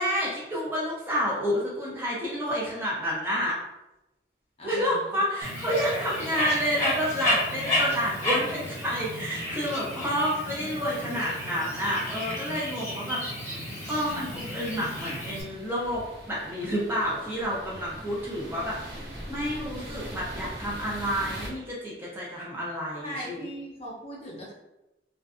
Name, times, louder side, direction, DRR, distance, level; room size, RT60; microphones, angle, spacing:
voice 1, 0.0-3.5 4.6-13.2 13.9-23.4, equal, 10° right, -6 dB, 0.5 m, -29 dB
voice 2, 4.6-5.2 23.0-24.5, equal, 35° left, -4 dB, 0.6 m, -39 dB
Bird, 5.4-15.4, left 1 dB, 15° left, 0.9 m, -32 dB
sound 1, 13.9-21.5, right 1 dB, 75° right, 0.7 m, -42 dB
2.5 x 2.3 x 2.4 m, 0.94 s
head